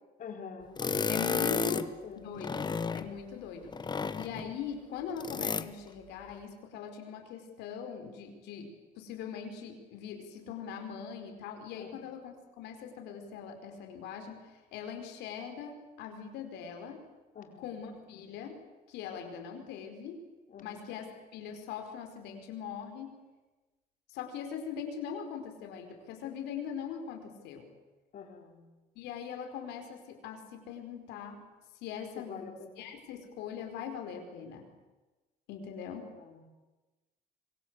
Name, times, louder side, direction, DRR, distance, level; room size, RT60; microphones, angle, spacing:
voice 1, 0.2-0.8 1.7-2.3 11.8-12.0 17.3-17.7 20.5-20.9 28.1-28.6 32.1-32.7 36.2-36.5, left 6 dB, 55° left, 4 dB, 4.5 m, -46 dB
voice 2, 0.8-1.9 2.1-17.0 17.6-18.6 18.9-20.2 20.6-21.1 21.3-23.2 24.1-27.7 28.9-31.4 31.8-32.5 32.8-34.7 35.5-36.1, left 7 dB, 90° left, 5 dB, 4.9 m, -41 dB
sound 1, 0.8-1.9 2.4-3.1 3.7-4.5 5.2-5.7, left 5 dB, 25° left, 1.1 m, -32 dB
25.5 x 23.0 x 8.2 m, 1.2 s
cardioid pair, 110°, 17 cm